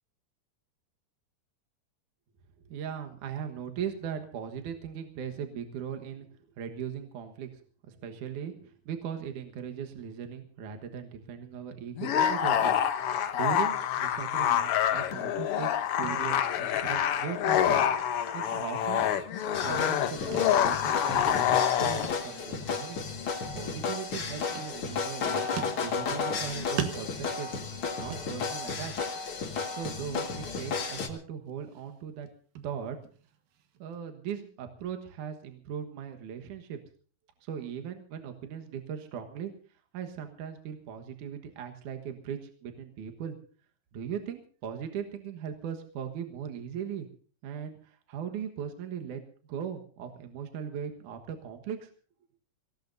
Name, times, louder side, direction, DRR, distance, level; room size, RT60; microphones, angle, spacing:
voice 1, 2.6-7.6 7.9-17.8 18.3-19.1 19.5-23.0 23.5-25.5 25.8-27.6 28.0-28.9 29.7-32.3 32.6-33.0 33.8-36.8 37.4-39.5 39.9-43.4 43.9-47.1 47.4-49.2 49.5-51.9, right 8 dB, 70° right, 5 dB, 2.8 m, -39 dB
sound 1, 12.0-22.1, left 10 dB, 75° left, 1.3 m, -27 dB
sound 2, 14.9-15.8 16.0-16.5 16.7-17.4 17.7-18.7 19.0-19.7 20.3-20.6 20.9-21.0 22.0-22.3 22.6-22.8 23.6-24.2 24.6-25.2 25.6-26.4 26.8-28.8 29.2-29.5 29.8-29.9 30.4-31.1 31.5-34.0, right 8 dB, 85° right, 3.1 m, -41 dB
sound 3, 19.5-31.1, left 5 dB, 45° left, 2.4 m, -33 dB
25.5 x 17.5 x 2.7 m, 0.41 s
omnidirectional pair, 3.9 m